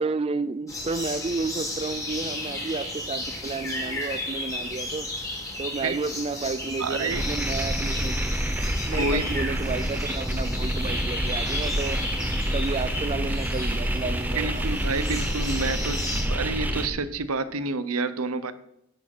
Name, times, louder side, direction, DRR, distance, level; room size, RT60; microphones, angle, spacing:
voice 1, 0.0-5.1 5.6-8.2 8.8-12.0 12.5-14.7, right 4 dB, 25° right, 13 dB, 0.3 m, -31 dB
sound 1, 0.7-16.2, left 1 dB, 15° left, 2.1 m, -34 dB
voice 2, 6.8-7.2 8.9-9.4 14.3-18.5, right 3 dB, 85° right, 13 dB, 0.8 m, -29 dB
sound 2, 7.1-16.9, equal, 10° right, 0.7 m, -28 dB
10.0 x 7.3 x 6.1 m, 0.80 s
head